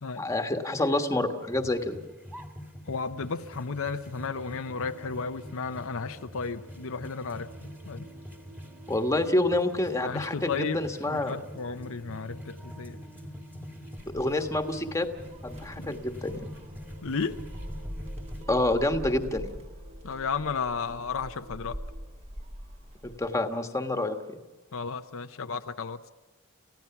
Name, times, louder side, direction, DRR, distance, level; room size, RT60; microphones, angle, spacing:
voice 1, 0.1-2.0 8.9-11.3 14.1-15.1 15.4-16.4 18.5-19.5 23.0-24.2, left 1 dB, 15° left, 6 dB, 1.5 m, -27 dB
sound 1, 1.4-18.4, equal, 10° right, 2.0 m, -45 dB
voice 2, 2.9-8.1 10.0-13.0 15.8-15.9 17.0-17.4 20.0-21.8 24.7-26.0, left 5 dB, 65° left, 8 dB, 0.7 m, -33 dB
sound 2, 2.9-22.1, right 1 dB, 85° right, 2.7 m, -52 dB
Gull seagull, 14.0-23.3, equal, 30° right, 1.7 m, -43 dB
29.0 x 15.5 x 5.9 m, 1.2 s
head